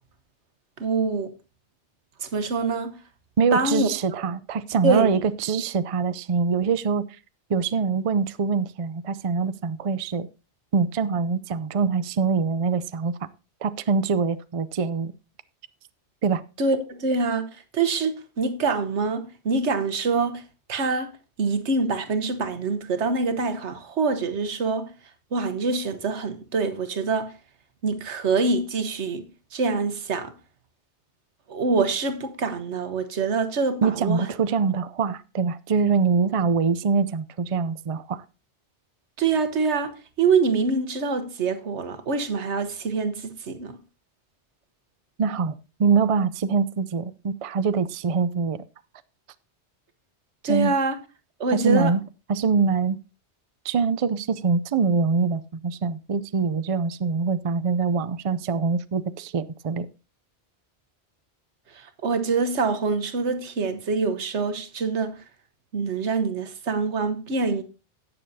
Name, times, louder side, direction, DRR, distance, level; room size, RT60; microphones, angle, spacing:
voice 1, 0.8-1.3 2.2-3.0 3.5-3.9 4.2-4.3 4.8-5.2 16.6-20.4 20.7-21.1 21.4-24.9 25.3-27.3 27.8-29.2 29.5-30.3 31.5-34.3 39.2-43.8 50.4-51.0 51.4-51.9 61.7-65.2 65.7-67.6, right 4 dB, 75° right, 1.4 m, -25 dB
voice 2, 3.4-7.1 7.5-10.3 10.7-13.1 13.6-15.1 16.2-16.4 33.8-38.2 45.2-48.6 50.5-50.7 51.5-52.0 52.3-53.0 53.6-59.9, right 5 dB, 45° right, 0.4 m, -24 dB
17.5 x 6.9 x 2.7 m
omnidirectional pair, 1.2 m